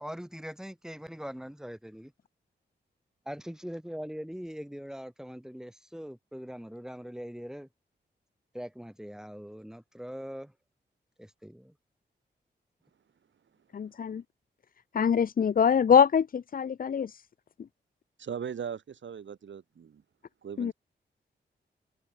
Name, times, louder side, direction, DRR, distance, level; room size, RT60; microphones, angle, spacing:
voice 1, 0.0-2.1 3.3-7.7 8.5-10.5 11.2-11.7, equal, 5° right, 3.9 m, -41 dB
voice 2, 13.7-14.2 14.9-17.2 20.6-20.7, left 7 dB, 50° left, 0.5 m, -24 dB
voice 3, 18.2-20.0 20.4-20.7, right 7 dB, 80° right, 4.0 m, -39 dB
cardioid pair, 70°, 19 cm